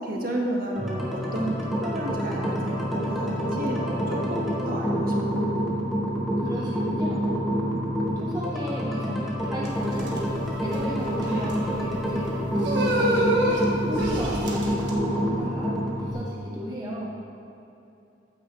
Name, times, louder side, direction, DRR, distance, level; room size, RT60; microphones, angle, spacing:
voice 1, 0.0-5.5, right 1 dB, 50° right, -1 dB, 1.6 m, -31 dB
sound 1, 0.8-16.1, equal, ahead, 1.6 m, -27 dB
voice 2, 6.4-7.3 8.2-10.2 10.6-17.1, equal, 20° right, -4 dB, 1.0 m, -35 dB
sound 2, 9.6-14.9, right 1 dB, 65° right, 1.5 m, -28 dB
14.5 x 9.3 x 3.3 m, 2.8 s
head